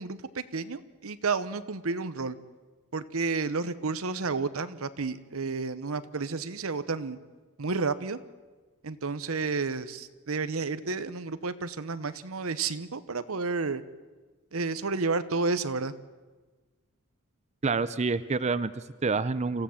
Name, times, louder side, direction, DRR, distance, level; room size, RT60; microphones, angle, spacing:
voice 1, 0.0-2.4 2.9-7.2 7.6-8.2 8.8-13.8 14.5-15.9, right 4 dB, 85° right, 13 dB, 0.9 m, -31 dB
voice 2, 17.6-19.6, right 4 dB, 30° right, 14 dB, 0.5 m, -28 dB
26.5 x 15.0 x 7.2 m, 1.3 s
head